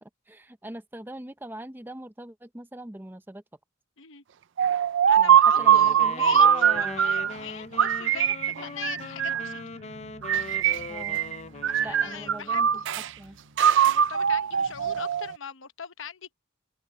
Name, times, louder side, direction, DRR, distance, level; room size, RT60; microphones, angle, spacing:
voice 1, 0.0-3.4 5.2-7.0 10.9-11.2 11.8-12.8 13.2-13.4, right 1 dB, 10° right, 0.7 m, -41 dB
sound 1, 4.6-7.3 7.8-9.6 10.2-11.4 11.6-13.1 13.6-15.4, right 9 dB, 60° right, 0.4 m, -22 dB
voice 2, 5.1-9.6 11.6-13.0 13.8-16.3, left 7 dB, 65° left, 0.9 m, -40 dB
Wind instrument woodwind instrument, 5.5-12.7, left 4 dB, 30° left, 0.6 m, -41 dB
sound 2, 6.7-15.0, right 1 dB, 85° right, 5.5 m, -52 dB
head